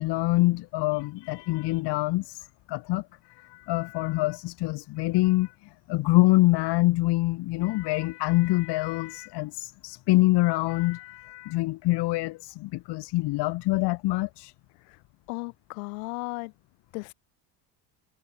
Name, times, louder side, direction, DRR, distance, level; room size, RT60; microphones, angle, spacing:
voice 1, 0.0-3.1 3.4-5.5 5.9-14.5, left 20 dB, 75° left, 3.5 m, -25 dB
voice 2, 15.3-16.5 16.9-17.1, left 31 dB, 90° left, 4.8 m, -35 dB
supercardioid pair, 85°, 41 cm